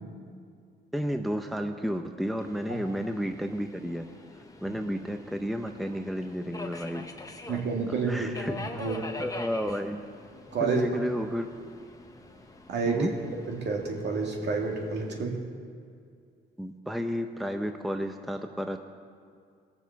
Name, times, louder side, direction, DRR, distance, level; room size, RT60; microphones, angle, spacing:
voice 1, 0.9-4.1 4.6-7.0 7.9-8.5 9.2-10.0 10.6-11.5 12.9-13.1 16.6-18.8, equal, ahead, 6 dB, 0.6 m, -32 dB
Subway metro underground, 2.4-15.2, left 2 dB, 15° left, 1.0 m, -45 dB
voice 2, 7.5-8.3 8.5-9.1 10.5-10.8 12.7-13.1 13.5-15.4, right 4 dB, 60° right, 1 dB, 2.2 m, -29 dB
19.0 x 7.1 x 5.9 m, 2.2 s
cardioid pair, 90°, 20 cm